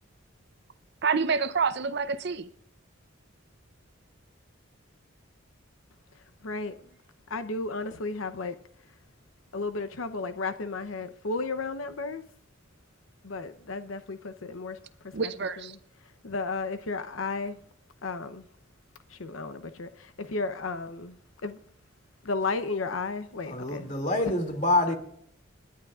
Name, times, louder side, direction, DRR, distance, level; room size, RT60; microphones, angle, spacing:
voice 1, 1.0-2.5 15.1-15.7, right 5 dB, 55° right, 0.6 m, -27 dB
voice 2, 6.1-6.8 7.3-8.6 9.5-12.2 13.2-15.3 15.6-17.6 18.0-18.4 19.1-21.6 22.2-24.0 24.9-25.0, left 3 dB, 85° left, 0.8 m, -34 dB
voice 3, 23.5-24.9, left 2 dB, 35° left, 2.5 m, -26 dB
29.0 x 10.5 x 2.4 m
head